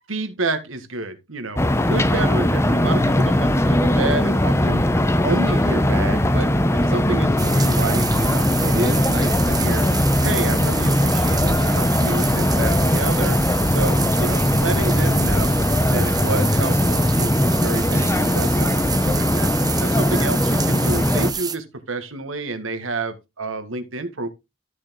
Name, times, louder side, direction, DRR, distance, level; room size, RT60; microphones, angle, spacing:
voice 1, 0.1-4.8 5.2-9.9 10.2-13.4 13.7-15.6 15.9-19.5 19.8-24.3, right 2 dB, 80° right, 1.8 m, -29 dB
sound 1, 1.6-21.3, left 1 dB, 15° left, 0.8 m, -19 dB
sound 2, 2.9-18.6, equal, 55° left, 6.1 m, -35 dB
sound 3, 7.4-21.6, right 6 dB, 20° right, 0.9 m, -29 dB
13.0 x 6.5 x 3.7 m
head